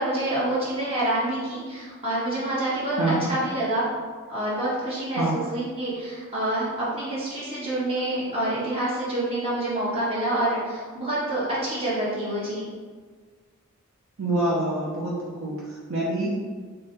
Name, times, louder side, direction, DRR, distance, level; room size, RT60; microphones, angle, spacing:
voice 1, 0.0-3.9 4.3-12.7, right 1 dB, 30° right, -9 dB, 1.3 m, -27 dB
voice 2, 3.0-3.3 5.2-5.4 14.2-16.3, right 2 dB, 65° right, -6 dB, 0.7 m, -26 dB
4.3 x 2.1 x 3.5 m, 1.5 s
head